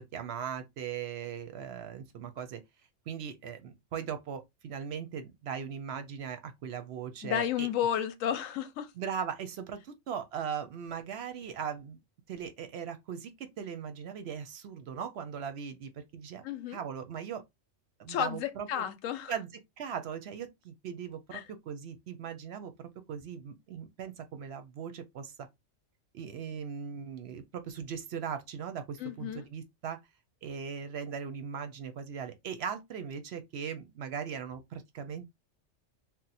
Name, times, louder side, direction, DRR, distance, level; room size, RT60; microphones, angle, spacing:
voice 1, 0.0-2.6 3.1-7.7 9.0-12.0 12.3-16.4 16.7-17.4 18.0-18.8 19.3-19.5 19.8-22.7 23.1-25.3 26.1-30.0 30.4-35.3, right 7 dB, 65° right, 0.7 m, -39 dB
voice 2, 7.2-8.9 16.4-16.8 18.1-19.3 21.3-21.5 29.0-29.4, left 10 dB, 90° left, 1.0 m, -32 dB
2.8 x 2.1 x 4.0 m
omnidirectional pair, 1.3 m